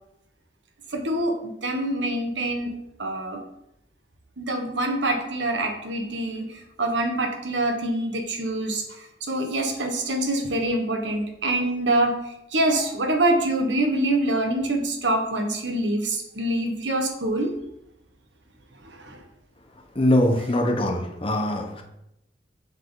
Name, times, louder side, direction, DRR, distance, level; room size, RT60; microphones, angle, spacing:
voice 1, 0.9-2.7 3.0-3.4 4.4-17.5 18.8-19.2, right 1 dB, 75° right, 4 dB, 1.4 m, -25 dB
voice 2, 19.9-21.8, left 1 dB, 30° left, 2 dB, 1.2 m, -22 dB
7.6 x 7.3 x 4.0 m, 0.83 s
head